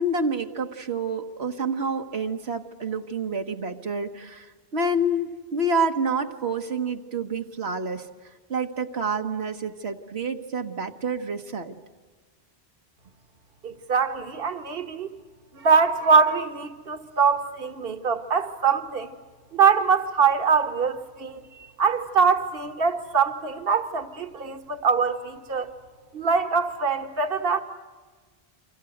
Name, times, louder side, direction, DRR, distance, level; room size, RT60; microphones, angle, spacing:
voice 1, 0.0-8.1 8.5-11.7, right 2 dB, 85° right, 1.6 m, -28 dB
voice 2, 13.6-15.1 15.5-19.1 19.5-21.4 21.8-25.7 26.1-27.6, right 5 dB, 65° right, 1.5 m, -23 dB
30.0 x 25.0 x 7.8 m
omnidirectional pair, 1.0 m